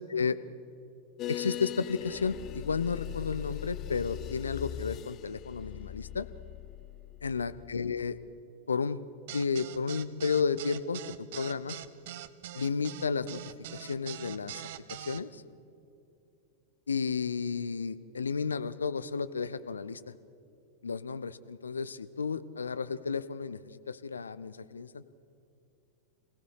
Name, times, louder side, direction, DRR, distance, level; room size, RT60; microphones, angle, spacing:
sound 1, 1.2-8.4, left 13 dB, 35° left, 0.4 m, -41 dB
voice 1, 1.3-6.3 7.2-8.2 8.7-9.0 9.3-11.8 12.5-13.4 13.7-14.6 14.9-15.4 16.9-20.1 20.8-23.6 23.9-25.1, left 5 dB, 75° left, 14 dB, 0.7 m, -32 dB
sound 2, 9.3-15.2, right 12 dB, 55° right, 0.7 m, -43 dB
27.0 x 17.0 x 6.6 m, 2.7 s
figure-of-eight pair, 90°, 0 cm